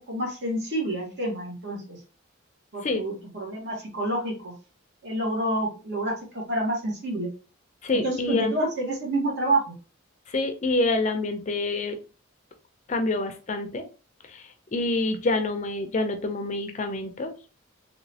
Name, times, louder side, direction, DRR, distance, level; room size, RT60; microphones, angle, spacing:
voice 1, 0.1-2.0 2.7-4.5 5.0-7.3 7.9-9.7, right 1 dB, 55° right, -1 dB, 1.3 m, -28 dB
voice 2, 7.8-8.5 10.3-12.0 12.9-13.8 14.3-17.3, left 2 dB, 35° left, 6 dB, 0.4 m, -27 dB
3.1 x 3.0 x 2.7 m, 0.34 s
head